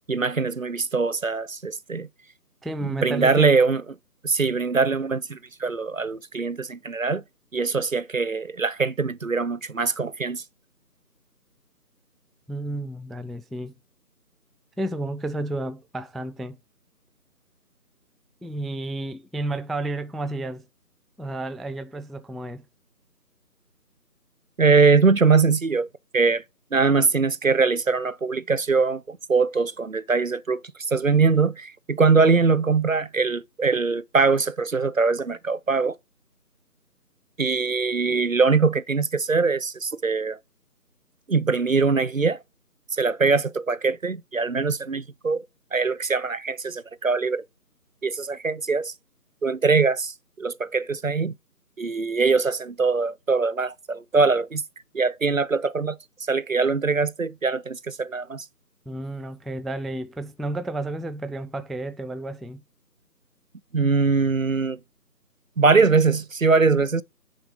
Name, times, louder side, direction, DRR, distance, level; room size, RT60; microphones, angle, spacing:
voice 1, 0.1-2.1 2.8-3.8 4.2-7.2 7.5-10.4 24.6-25.9 26.1-26.4 26.7-30.6 30.9-36.0 37.4-40.4 41.3-42.4 42.9-45.4 45.7-47.4 48.0-48.9 49.4-51.3 51.8-54.6 54.9-56.0 56.3-58.4 63.7-64.8 65.6-67.0, right 4 dB, 55° right, 0.6 m, -22 dB
voice 2, 2.6-3.7 12.5-13.8 14.8-16.6 18.4-20.7 21.2-22.6 58.9-62.6, right 2 dB, ahead, 0.4 m, -31 dB
8.7 x 3.6 x 4.9 m
figure-of-eight pair, 175°, 48 cm